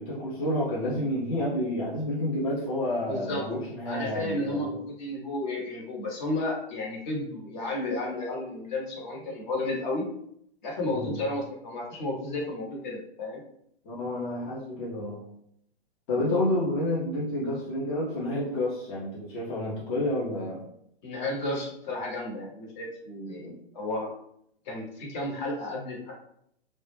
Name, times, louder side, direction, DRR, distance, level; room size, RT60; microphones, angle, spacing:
voice 1, 0.0-4.7 10.9-11.2 13.8-15.2 16.1-20.7 23.4-23.6, left 1 dB, 30° left, -6 dB, 0.6 m, -29 dB
voice 2, 3.0-3.4 3.9-10.1 10.6-13.4 16.1-16.4 21.0-23.5 23.7-24.1 24.7-26.1, left 2 dB, 45° left, -2 dB, 1.0 m, -32 dB
2.1 x 2.0 x 3.1 m, 0.71 s
hypercardioid pair, 125°, 31 cm